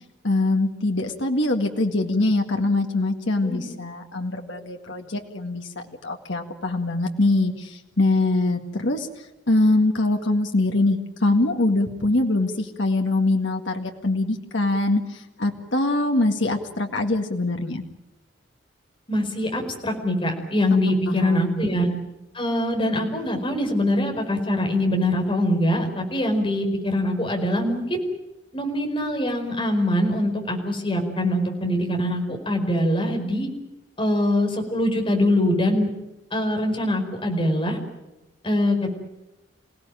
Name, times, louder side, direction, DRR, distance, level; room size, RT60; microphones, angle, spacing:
voice 1, 0.2-9.1 9.5-17.8 21.1-21.5, left 2 dB, 75° left, 3 dB, 2.0 m, -23 dB
voice 2, 19.1-21.9 22.3-28.0 28.5-33.5 34.0-35.9 36.3-37.8 38.4-39.0, left 1 dB, 30° left, 3 dB, 4.9 m, -23 dB
27.5 x 17.5 x 9.1 m, 0.99 s
head